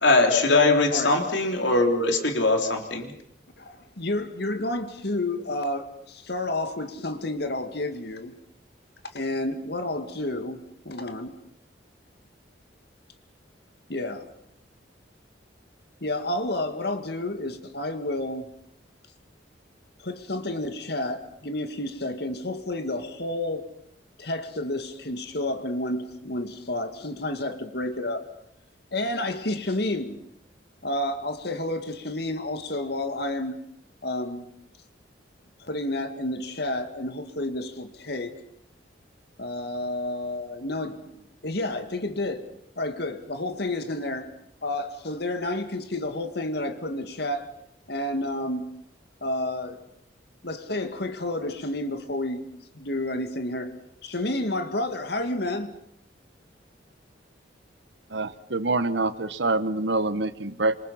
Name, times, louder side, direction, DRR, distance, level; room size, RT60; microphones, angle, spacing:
voice 1, 0.0-3.1, left 2 dB, 80° left, 3.7 m, -21 dB
voice 2, 3.6-8.4 9.1-11.4 13.9-14.3 16.0-18.5 20.0-23.7 24.2-28.3 28.9-30.2 30.8-33.6 34.0-34.5 35.6-38.4 39.4-41.0 41.4-42.5 42.8-44.3 44.6-47.5 47.9-48.7 49.2-49.8 50.4-53.7 54.0-55.7, left 1 dB, 60° left, 2.2 m, -30 dB
voice 3, 58.1-60.7, right 2 dB, 70° right, 1.3 m, -26 dB
27.5 x 25.5 x 5.8 m
head